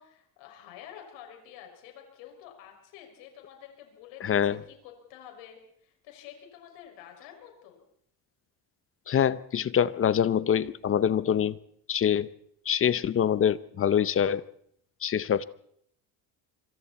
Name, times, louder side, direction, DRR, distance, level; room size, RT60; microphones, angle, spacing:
voice 1, 0.0-7.8, left 10 dB, 80° left, 2 dB, 6.1 m, -49 dB
voice 2, 4.2-4.6 9.1-11.5 11.9-12.3 12.7-14.4 15.0-15.4, left 9 dB, 30° left, 17 dB, 0.8 m, -25 dB
25.5 x 25.0 x 4.3 m, 0.70 s
cardioid pair, 130°, 44 cm